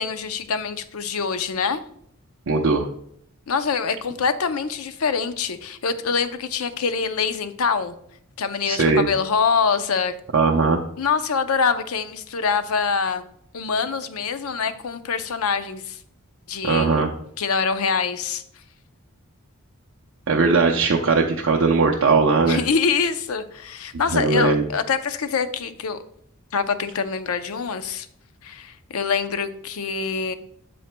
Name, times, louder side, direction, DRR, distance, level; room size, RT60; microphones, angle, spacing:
voice 1, 0.0-1.8 3.5-8.0 8.4-10.1 11.0-13.2 13.5-16.0 16.5-17.0 17.4-18.4 22.5-26.0 26.5-28.1 28.4-30.4, left 5 dB, 80° left, 11 dB, 0.6 m, -24 dB
voice 2, 2.5-2.9 8.7-9.0 10.3-10.8 16.6-17.1 20.3-22.6 24.1-24.6, right 4 dB, 65° right, 0 dB, 0.6 m, -19 dB
8.0 x 7.6 x 2.2 m, 0.69 s
head